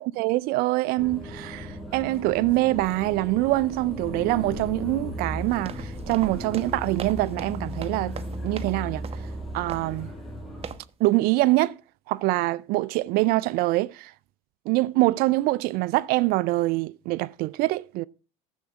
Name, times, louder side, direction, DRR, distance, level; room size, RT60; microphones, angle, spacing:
voice 1, 0.0-8.2 8.4-9.1 9.5-10.1 11.0-11.8 12.1-14.1 14.7-18.0, right 19 dB, 60° right, 0.5 m, -24 dB
sound 1, 1.0-10.7, equal, ahead, 5.6 m, -36 dB
sound 2, 5.4-8.8 9.0-9.3 9.7-10.0 10.6-10.9, right 7 dB, 35° right, 1.1 m, -40 dB
11.0 x 8.0 x 6.3 m
supercardioid pair, 95°, 17 cm